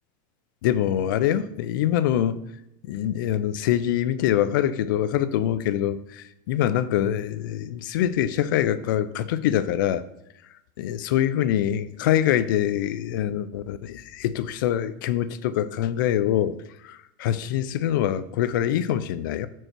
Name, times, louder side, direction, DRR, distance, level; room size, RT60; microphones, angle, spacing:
voice 1, 0.6-2.4 2.9-10.0 10.8-16.6 16.8-19.5, left 11 dB, 75° left, 14 dB, 0.5 m, -24 dB
6.5 x 4.6 x 4.5 m, 0.81 s
supercardioid pair, 160°, 11 cm